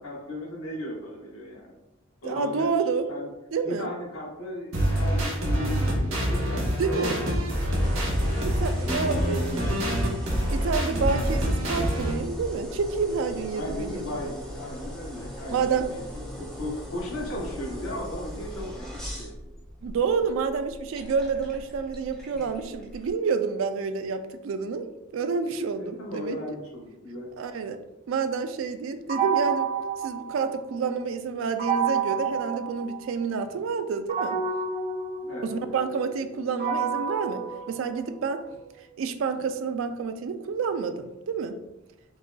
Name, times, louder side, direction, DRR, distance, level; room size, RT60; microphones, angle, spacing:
voice 1, 0.0-1.8 2.2-2.7 3.1-3.3 3.6-7.1 7.4-8.0 8.9-9.9 13.5-19.3 22.3-22.4 25.8-27.3 35.2-35.5, left 1 dB, 85° left, -2 dB, 1.1 m, -36 dB
voice 2, 2.2-3.1 3.5-3.9 6.8-7.2 8.4-9.4 10.5-14.3 15.5-15.9 19.8-26.4 27.4-27.8 28.1-29.7 30.0-34.4 35.4-38.6 39.0-41.6, right 5 dB, 70° right, 10 dB, 0.3 m, -29 dB
sound 1, 4.7-12.1, equal, 90° right, 1.0 m, -26 dB
sound 2, 7.8-23.1, equal, 5° left, 0.5 m, -40 dB
sound 3, 29.1-30.9 31.6-33.4 34.1-38.4, right 6 dB, 40° right, 0.8 m, -29 dB
5.3 x 2.5 x 2.3 m, 0.99 s
head